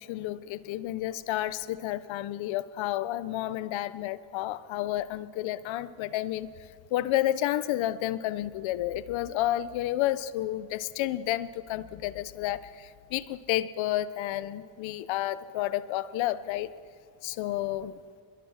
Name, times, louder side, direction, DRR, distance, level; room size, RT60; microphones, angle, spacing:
voice 1, 0.0-6.5 6.9-16.7 17.2-18.0, left 14 dB, 75° left, 16 dB, 1.0 m, -31 dB
27.0 x 21.5 x 5.9 m, 2.4 s
cardioid pair, 165°, 47 cm